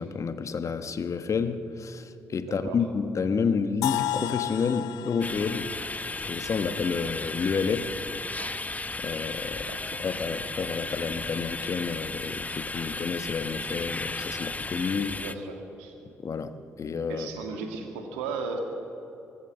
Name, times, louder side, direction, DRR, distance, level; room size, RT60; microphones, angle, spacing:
voice 1, 0.0-5.8 6.2-8.0 9.0-9.6 10.0-15.2 16.2-17.4, left 5 dB, 50° left, 10 dB, 1.3 m, -30 dB
voice 2, 2.4-2.8 8.4-8.5 9.5-10.1 15.2-15.9 17.1-18.6, right 4 dB, 80° right, 4 dB, 2.0 m, -36 dB
sound 1, 3.8-7.7, left 14 dB, 75° left, 0.4 m, -34 dB
sound 2, 5.2-15.3, left 2 dB, 20° left, 1.0 m, -35 dB
24.0 x 14.5 x 7.6 m, 2.9 s
hypercardioid pair, 40°, 7 cm